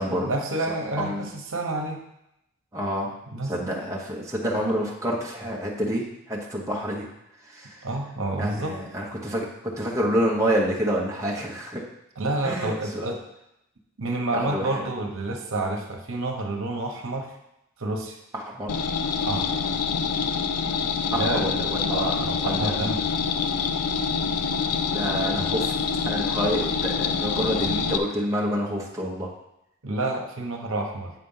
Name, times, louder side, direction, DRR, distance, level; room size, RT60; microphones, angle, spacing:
voice 1, 0.0-2.0 3.3-3.5 7.8-8.8 12.2-13.2 14.0-17.3 17.8-18.2 19.2-19.7 21.1-21.5 21.9-23.0 25.0-25.5 29.8-31.1, right 2 dB, 60° right, 2 dB, 1.2 m, -29 dB
voice 2, 1.0-1.3 2.7-3.2 3.5-7.1 7.5-7.9 8.4-11.8 12.4-13.1 14.3-14.9 18.3-18.7 21.1-22.7 24.9-25.7 26.0-29.3, equal, 15° right, -3 dB, 1.2 m, -28 dB
sound 1, 18.7-28.0, left 5 dB, 85° left, 0.5 m, -26 dB
7.8 x 4.2 x 5.6 m, 0.85 s
head